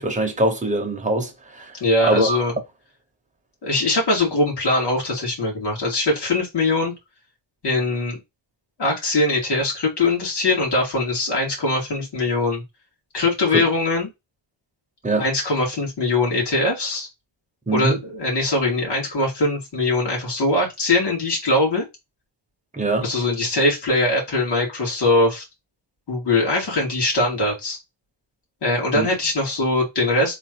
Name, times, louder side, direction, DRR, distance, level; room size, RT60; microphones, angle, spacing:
voice 1, 0.0-1.8 2.0-2.4 13.5-13.6 15.0-15.2 17.7-18.0 22.7-23.1 28.9-29.1, right 2 dB, 15° right, 0.9 m, -22 dB
voice 2, 1.8-2.6 3.6-6.9 7.6-8.2 8.8-12.6 13.1-14.1 15.2-17.1 17.7-21.9 23.0-25.4 26.1-27.8 28.6-30.3, left 2 dB, 60° left, 2.3 m, -21 dB
3.8 x 2.6 x 4.5 m
wide cardioid pair, 175°, 45 cm